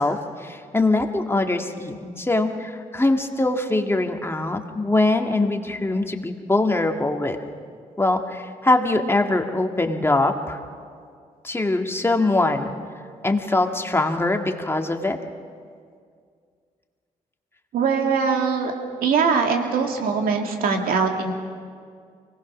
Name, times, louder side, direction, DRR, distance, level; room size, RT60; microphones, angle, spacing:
voice 1, 0.0-7.4 8.0-10.6 11.4-12.7 13.2-15.2, left 2 dB, 15° left, 3 dB, 1.9 m, -22 dB
voice 2, 17.7-18.7 19.0-21.3, right 5 dB, 80° right, 3 dB, 2.1 m, -22 dB
24.5 x 18.5 x 6.2 m, 2.1 s
supercardioid pair, 55°, 15 cm